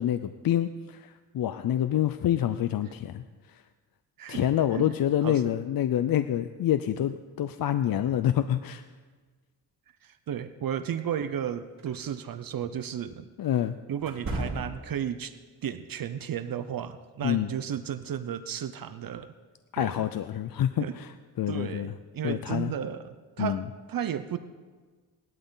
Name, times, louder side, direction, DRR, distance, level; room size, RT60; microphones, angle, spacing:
voice 1, 0.0-3.2 4.3-8.8 13.4-13.8 17.2-17.5 19.7-21.1 21.4-21.9 22.2-22.7 23.4-23.6, left 11 dB, 65° left, 11 dB, 0.6 m, -27 dB
voice 2, 4.2-4.9 5.2-5.4 10.0-13.3 13.9-15.3 15.6-19.3 19.8-20.1 20.8-21.0 21.5-24.4, right 9 dB, 60° right, 11 dB, 0.7 m, -34 dB
sound 1, 11.8-12.0 14.0-15.0, right 1 dB, 45° right, 4.4 m, -35 dB
18.5 x 12.0 x 4.0 m, 1.4 s
cardioid pair, 100°, 38 cm